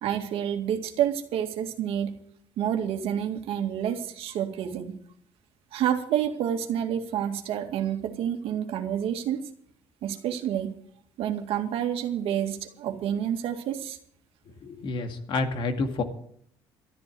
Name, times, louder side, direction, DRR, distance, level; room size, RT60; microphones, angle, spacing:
voice 1, 0.0-2.1 2.6-5.0 5.7-9.4 10.0-10.7 11.2-14.0, right 10 dB, 70° right, 5 dB, 2.1 m, -28 dB
voice 2, 14.6-16.0, left 3 dB, 60° left, 6 dB, 2.2 m, -29 dB
13.0 x 11.0 x 7.7 m, 0.65 s
cardioid pair, 115°, 10 cm